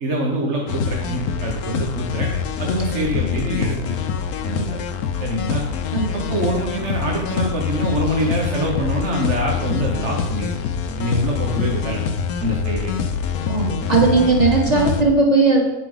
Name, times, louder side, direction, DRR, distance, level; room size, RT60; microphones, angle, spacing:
voice 1, 0.0-2.3 2.6-4.0 4.4-4.7 5.2-5.6 6.1-10.5 11.0-12.0 12.4-13.0, right 1 dB, 50° right, -1 dB, 1.6 m, -24 dB
sound 1, 0.7-15.0, left 6 dB, 80° left, 1.3 m, -25 dB
voice 2, 5.9-6.4 13.5-15.6, right 3 dB, 25° right, -3 dB, 2.9 m, -18 dB
10.5 x 10.0 x 3.9 m, 1.1 s
omnidirectional pair, 1.6 m